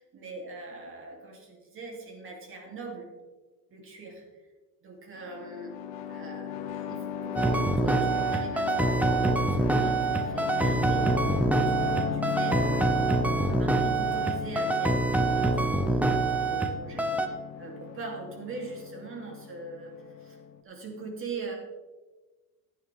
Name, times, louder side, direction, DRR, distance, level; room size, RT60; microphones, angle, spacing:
voice 1, 0.0-3.1 3.7-4.2 4.8-5.8 6.1-11.1 11.5-19.9 20.2-21.5, right 3 dB, 35° right, 0 dB, 3.1 m, -42 dB
sound 1, 5.2-20.6, left 8 dB, 85° left, 1.3 m, -36 dB
sound 2, 7.4-16.7 17.0-17.3, right 2 dB, 5° right, 0.6 m, -25 dB
14.5 x 10.5 x 3.6 m, 1.2 s
cardioid pair, 150°, 38 cm